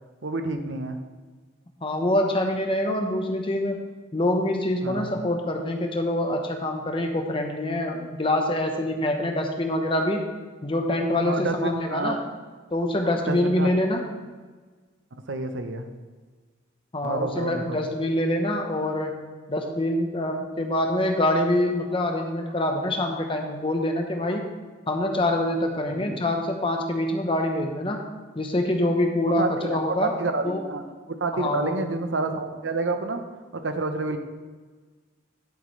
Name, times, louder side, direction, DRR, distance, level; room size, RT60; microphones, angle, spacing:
voice 1, 0.2-1.0 4.8-5.1 11.2-12.2 13.0-13.7 15.3-15.9 17.0-17.8 25.9-26.1 29.2-30.8 31.2-33.2 33.5-34.2, right 3 dB, 65° right, 7 dB, 0.8 m, -29 dB
voice 2, 1.8-3.8 4.1-10.2 10.6-12.2 12.7-14.0 16.9-19.1 19.5-24.4 24.9-28.0 28.4-30.1 30.4-30.6 31.3-31.8, left 1 dB, 25° left, 3 dB, 1.0 m, -25 dB
11.0 x 7.8 x 3.2 m, 1.4 s
head